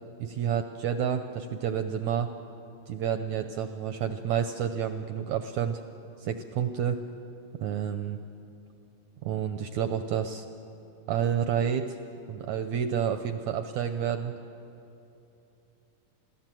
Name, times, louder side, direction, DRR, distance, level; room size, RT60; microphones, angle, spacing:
voice 1, 0.2-2.3 2.9-5.8 6.2-7.0 7.6-8.2 9.2-10.5 11.1-12.0 12.3-14.3, right 8 dB, 80° right, 8 dB, 1.6 m, -29 dB
28.5 x 17.5 x 7.6 m, 2.8 s
omnidirectional pair, 4.1 m